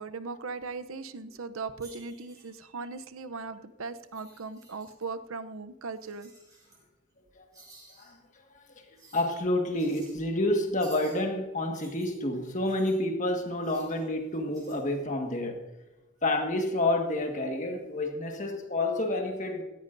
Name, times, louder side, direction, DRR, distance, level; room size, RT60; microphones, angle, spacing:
voice 1, 0.0-6.3, right 4 dB, 70° right, 12 dB, 0.7 m, -38 dB
sound 1, 1.8-2.6 4.0-5.0 5.9-6.8 7.5-8.1 9.0-9.3 9.7-10.2 10.8-11.2 11.7-13.0 13.6-14.0 14.5-14.7, right 2 dB, 15° right, 5.0 m, -54 dB
voice 2, 9.1-15.6 16.2-19.6, left 1 dB, 35° left, 4 dB, 1.6 m, -29 dB
16.5 x 14.5 x 2.6 m, 1.1 s
head